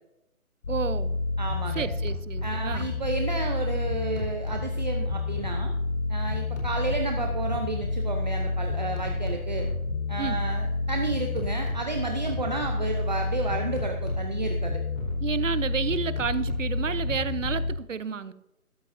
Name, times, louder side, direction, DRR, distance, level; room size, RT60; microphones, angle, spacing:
sound 1, 0.6-17.7, left 3 dB, 65° left, 4.6 m, -29 dB
voice 1, 0.7-1.2 1.7-2.9 10.2-10.4 15.2-18.3, right 7 dB, 60° right, 14 dB, 0.8 m, -31 dB
voice 2, 1.4-1.9 2.4-5.7 6.1-9.7 10.1-14.8, right 3 dB, 30° right, 3 dB, 0.8 m, -32 dB
13.5 x 12.5 x 2.7 m, 0.86 s
hypercardioid pair, 170°, 43 cm